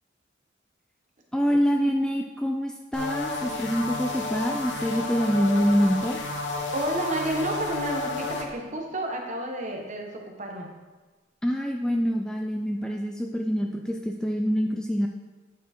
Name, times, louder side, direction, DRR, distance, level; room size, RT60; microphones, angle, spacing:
voice 1, 1.3-6.2 11.4-15.1, equal, 5° left, 2 dB, 0.3 m, -25 dB
sound 1, 2.9-8.5, left 2 dB, 70° left, 1.0 m, -31 dB
voice 2, 6.7-10.7, right 1 dB, 40° right, 2 dB, 1.1 m, -30 dB
9.3 x 4.4 x 4.4 m, 1.3 s
head